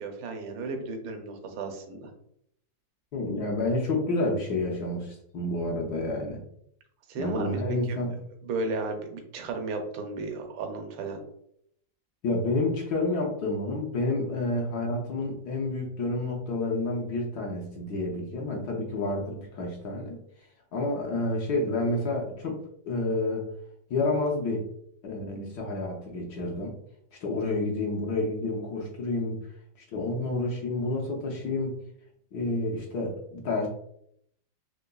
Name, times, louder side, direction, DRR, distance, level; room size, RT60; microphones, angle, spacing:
voice 1, 0.0-2.1 7.1-7.6 7.9-8.0 8.4-11.2, right 3 dB, 80° right, 5 dB, 1.4 m, -34 dB
voice 2, 3.1-6.4 7.2-8.1 12.2-20.2 20.7-22.6 22.8-23.5 23.9-24.7 25.0-26.7 27.2-29.4 29.9-31.8 32.3-33.7, left 2 dB, 65° left, -1 dB, 1.1 m, -29 dB
3.8 x 3.0 x 2.2 m, 0.70 s
omnidirectional pair, 2.0 m